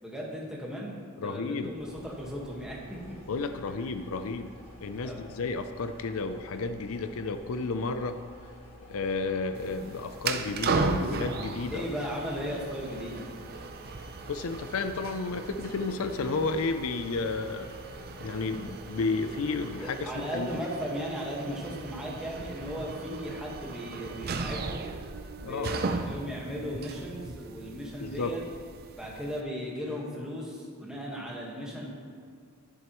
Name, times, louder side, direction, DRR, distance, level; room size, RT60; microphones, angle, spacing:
voice 1, 0.0-3.2 5.0-5.4 11.7-13.3 19.8-24.9 25.4-28.4 29.0-31.9, equal, 5° right, -4 dB, 1.5 m, -36 dB
voice 2, 1.2-1.7 3.3-4.5 4.8-8.2 8.9-11.9 14.3-17.7 18.2-20.6 25.4-25.8 28.0-28.3, left 3 dB, 70° left, 9 dB, 0.5 m, -32 dB
sound 1, 1.6-20.5, equal, 25° left, 2.0 m, -50 dB
sound 2, 9.5-29.4, right 4 dB, 45° right, 0.5 m, -37 dB
10.5 x 10.5 x 3.0 m, 2.2 s
head